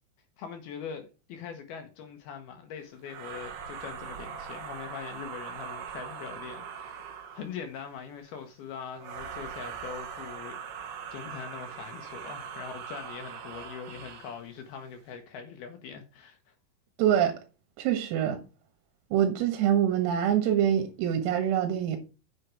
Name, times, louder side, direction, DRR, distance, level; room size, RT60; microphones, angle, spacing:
voice 1, 0.4-16.5, left 7 dB, 70° left, 2.4 m, -42 dB
sound 1, 3.0-7.6 9.0-14.4, right 7 dB, 60° right, 3.1 m, -41 dB
voice 2, 17.0-17.4 17.8-18.4 19.1-22.0, right 10 dB, 85° right, 4.2 m, -25 dB
8.0 x 7.5 x 4.7 m
omnidirectional pair, 5.9 m